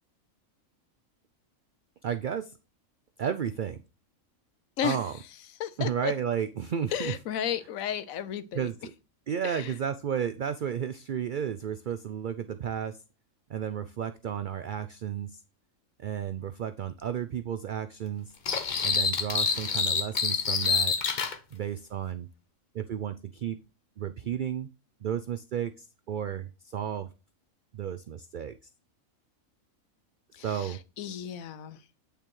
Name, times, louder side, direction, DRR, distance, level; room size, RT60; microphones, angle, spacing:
voice 1, 2.0-2.5 3.2-3.8 4.8-5.2 5.8-7.1 8.5-8.9 9.3-13.0 13.5-15.4 16.0-18.3 18.8-20.9 21.5-22.3 22.7-23.6 24.0-24.7 25.0-27.1 27.7-28.6 30.4-30.8, right 8 dB, 85° right, 0.4 m, -32 dB
voice 2, 5.6-6.1 6.9-8.7 9.4-9.7 30.3-31.8, left 9 dB, 80° left, 1.1 m, -33 dB
sound 1, 18.5-21.4, left 5 dB, 40° left, 0.8 m, -27 dB
8.3 x 6.7 x 3.1 m
omnidirectional pair, 1.4 m